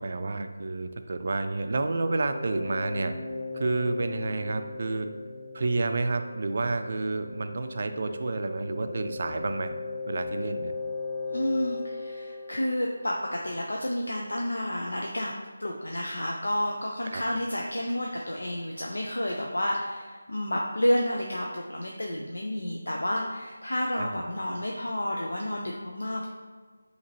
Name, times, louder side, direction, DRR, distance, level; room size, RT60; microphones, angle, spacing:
voice 1, 0.0-3.1 3.5-5.1 5.5-9.7 10.1-10.7 17.0-17.2 23.9-24.1, right 3 dB, 50° right, 8 dB, 0.4 m, -30 dB
sound 1, 2.1-13.7, left 3 dB, 30° left, 0.7 m, -38 dB
voice 2, 11.3-15.3 15.6-26.3, left 1 dB, 85° left, -1 dB, 0.5 m, -30 dB
6.3 x 2.9 x 2.9 m, 1.5 s
figure-of-eight pair, 165°, 0 cm